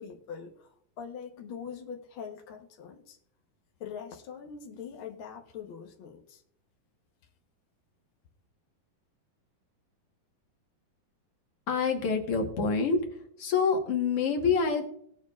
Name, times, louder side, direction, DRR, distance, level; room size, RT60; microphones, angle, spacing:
voice 1, 0.0-3.2 3.8-6.4, left 7 dB, 85° left, 2 dB, 1.1 m, -43 dB
voice 2, 11.7-13.0 13.4-14.9, left 5 dB, 55° left, 3 dB, 1.9 m, -26 dB
19.0 x 7.0 x 2.4 m, 0.68 s
omnidirectional pair, 3.9 m